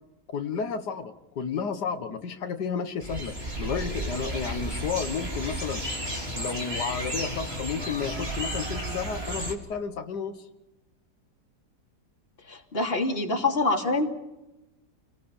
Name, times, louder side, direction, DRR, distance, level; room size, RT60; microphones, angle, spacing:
voice 1, 0.3-5.8 6.4-10.4, left 6 dB, 85° left, 7 dB, 1.9 m, -32 dB
sound 1, 3.0-9.5, equal, 35° right, 3.4 m, -33 dB
voice 2, 12.4-14.1, left 2 dB, 35° left, 1 dB, 3.2 m, -26 dB
29.5 x 19.5 x 7.1 m, 0.98 s
omnidirectional pair, 1.7 m